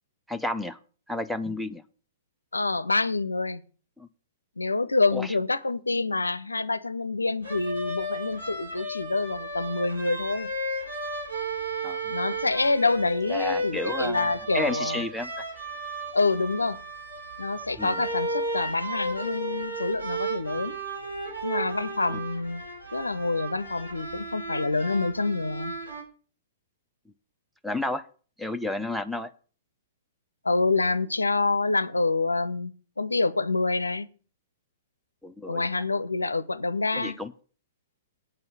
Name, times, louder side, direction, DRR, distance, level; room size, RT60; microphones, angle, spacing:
voice 1, 0.3-0.8 1.1-1.8 4.0-4.1 5.1-5.3 11.8-12.0 13.3-14.3 14.5-15.4 17.8-18.0 22.1-22.2 27.6-28.1 28.4-29.3 35.2-35.6 36.9-37.3, left 1 dB, ahead, 0.6 m, -31 dB
voice 2, 2.5-3.6 4.6-10.5 12.1-15.0 16.1-16.8 17.4-20.8 21.4-22.6 22.9-25.7 30.4-34.1 35.5-37.2, left 3 dB, 80° left, 0.6 m, -27 dB
sound 1, 7.4-26.0, right 1 dB, 85° right, 4.8 m, -34 dB
8.7 x 5.5 x 8.0 m
figure-of-eight pair, 110°, 0 cm